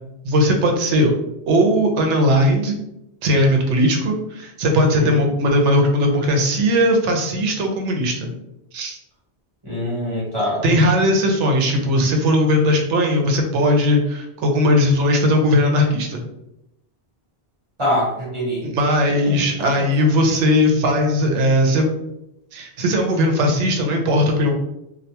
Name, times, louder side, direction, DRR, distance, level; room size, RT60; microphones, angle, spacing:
voice 1, 0.2-1.1 1.5-2.8 3.2-8.3 8.7-9.0 10.6-16.2 18.6-21.9 22.5-24.5, equal, 85° right, 2 dB, 0.9 m, -18 dB
voice 2, 4.8-5.2 9.6-10.8 17.8-18.7 19.1-19.9, equal, 30° right, -7 dB, 1.0 m, -25 dB
2.3 x 2.2 x 2.8 m, 0.85 s
omnidirectional pair, 1.2 m